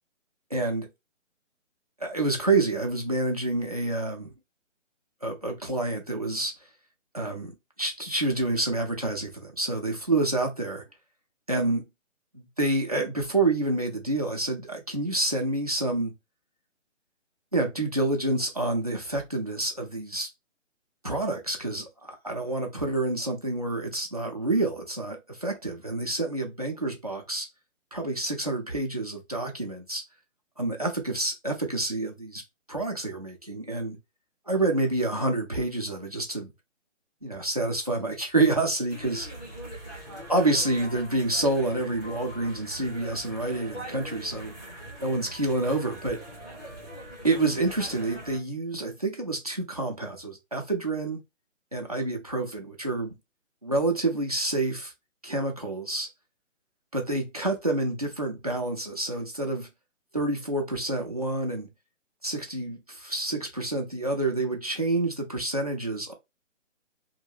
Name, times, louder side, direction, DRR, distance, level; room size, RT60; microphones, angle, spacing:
voice 1, 0.5-0.9 2.0-4.3 5.2-6.5 7.1-10.8 11.5-11.9 12.3-16.1 17.5-20.3 21.0-27.5 27.9-30.0 30.6-32.4 32.7-34.0 34.5-36.5 37.2-39.3 40.3-44.5 45.0-46.2 47.2-51.2 51.7-53.1 53.6-54.9 55.2-56.1 56.9-59.7 60.1-61.7 62.2-66.1, right 2 dB, 30° right, 0.4 m, -28 dB
sound 1, 38.9-48.4, equal, ahead, 0.9 m, -42 dB
2.6 x 2.2 x 3.1 m
hypercardioid pair, 165°, 39 cm